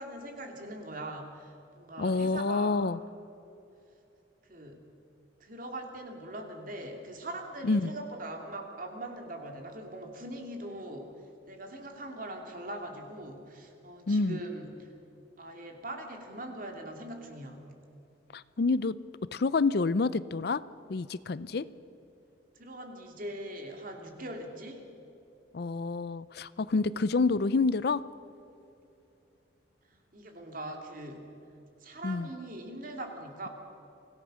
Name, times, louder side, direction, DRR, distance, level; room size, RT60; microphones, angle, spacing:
voice 1, 0.0-2.8 4.5-4.8 5.4-11.1 11.5-14.9 15.4-17.6 22.5-24.9 29.9-31.3 31.8-33.5, right 1 dB, 45° right, 3 dB, 2.9 m, -41 dB
voice 2, 2.0-3.0 7.6-7.9 14.1-14.4 18.3-19.0 19.3-20.6 20.9-21.7 25.5-28.0 32.0-32.3, left 3 dB, 55° left, 17 dB, 0.5 m, -28 dB
25.0 x 17.0 x 6.4 m, 2.9 s
head